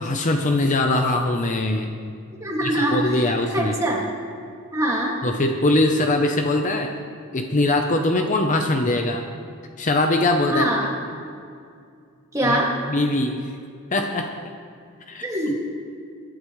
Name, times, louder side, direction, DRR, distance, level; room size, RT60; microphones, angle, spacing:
voice 1, 0.0-1.9 2.6-3.7 5.2-6.9 7.3-9.3 9.8-10.7 12.4-12.6 12.9-13.4 13.9-14.3 15.1-15.6, left 2 dB, 35° left, 4 dB, 0.7 m, -22 dB
voice 2, 2.4-3.2 3.5-4.0 4.7-5.2 10.5-10.9 12.3-12.7 15.2-15.6, right 1 dB, 15° right, -2 dB, 2.1 m, -23 dB
22.0 x 12.0 x 3.2 m, 2.3 s
head